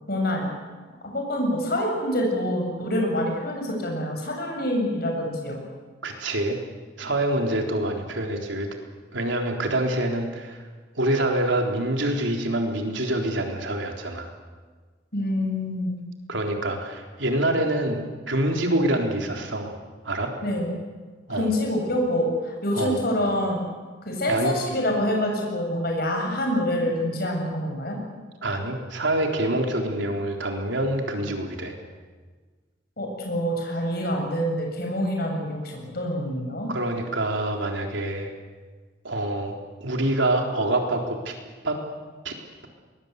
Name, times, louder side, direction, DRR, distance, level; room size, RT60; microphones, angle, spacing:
voice 1, 0.1-0.5 1.1-5.6 15.1-16.0 20.4-20.7 21.3-23.6 24.1-28.0 33.0-36.7, left 1 dB, 55° left, 1 dB, 7.3 m, -26 dB
voice 2, 6.0-6.6 7.0-8.7 9.1-10.6 10.9-14.3 16.3-19.7 20.0-20.3 21.3-21.5 22.7-23.0 24.3-24.5 28.4-31.8 36.7-38.3 39.0-41.3 41.6-41.8 42.2-42.3, right 1 dB, 85° right, 2 dB, 3.9 m, -26 dB
23.0 x 21.0 x 8.3 m, 1.4 s
head